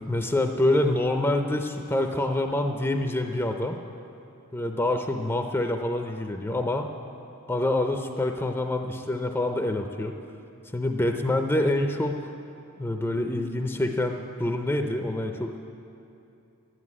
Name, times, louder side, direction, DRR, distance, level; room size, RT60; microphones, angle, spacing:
voice 1, 0.1-3.8 4.5-6.9 7.5-10.2 10.7-12.2 12.8-15.6, left 1 dB, 10° left, 4 dB, 0.5 m, -26 dB
11.5 x 9.6 x 9.5 m, 2.8 s
head